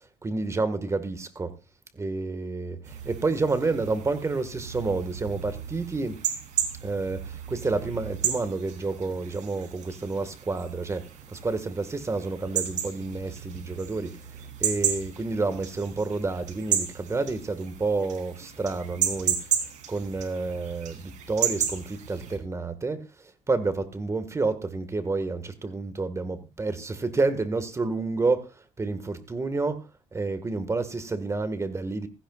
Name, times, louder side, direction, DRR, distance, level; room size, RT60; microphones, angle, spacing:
voice 1, 0.2-1.5 1.9-6.2 6.8-14.1 14.6-19.5 19.9-23.0 23.5-32.1, right 3 dB, 20° right, 1.7 m, -29 dB
sound 1, 2.8-22.4, right 8 dB, 65° right, 3.1 m, -33 dB
16.5 x 15.0 x 2.4 m
cardioid pair, 115°, 13 cm